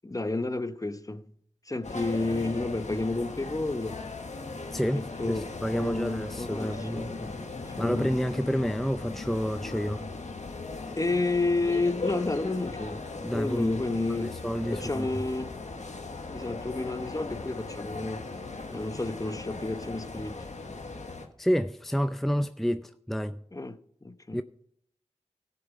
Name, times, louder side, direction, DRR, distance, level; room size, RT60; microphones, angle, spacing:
voice 1, 0.0-1.2 1.7-4.0 4.9-5.5 5.7-7.3 7.8-8.1 10.9-13.0 13.3-14.3 14.7-15.5 16.3-18.2 18.7-20.5 23.5-24.4, left 2 dB, 30° left, 0.9 m, -31 dB
sound 1, 1.8-21.3, left 3 dB, 75° left, 1.6 m, -38 dB
voice 2, 4.7-7.1 7.8-10.1 13.2-13.8 14.1-15.1 21.4-23.4 24.3-24.4, equal, ahead, 0.5 m, -29 dB
15.5 x 6.9 x 4.8 m
cardioid pair, 40°, 12 cm